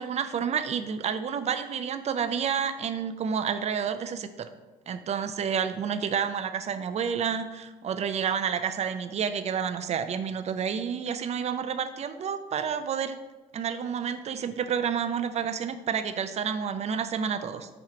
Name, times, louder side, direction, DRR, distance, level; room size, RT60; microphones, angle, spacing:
voice 1, 0.0-4.5 4.9-13.2 13.5-17.7, right 7 dB, 40° right, 11 dB, 0.5 m, -29 dB
7.5 x 3.0 x 4.9 m, 1.1 s
cardioid pair, 110°, 17 cm